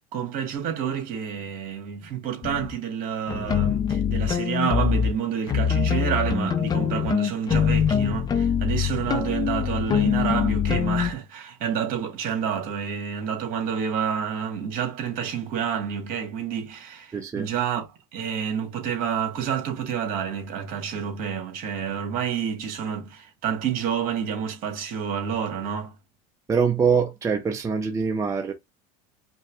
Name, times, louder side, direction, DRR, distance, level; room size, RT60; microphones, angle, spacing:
voice 1, 0.0-25.9, right 8 dB, 50° right, 2.1 m, -29 dB
sound 1, 2.4-2.7 3.3-5.1 5.5-11.1, left 7 dB, 20° left, 0.5 m, -24 dB
voice 2, 17.1-17.5 26.5-28.5, right 6 dB, 15° right, 0.6 m, -24 dB
5.2 x 2.2 x 3.6 m
supercardioid pair, 135°, 18 cm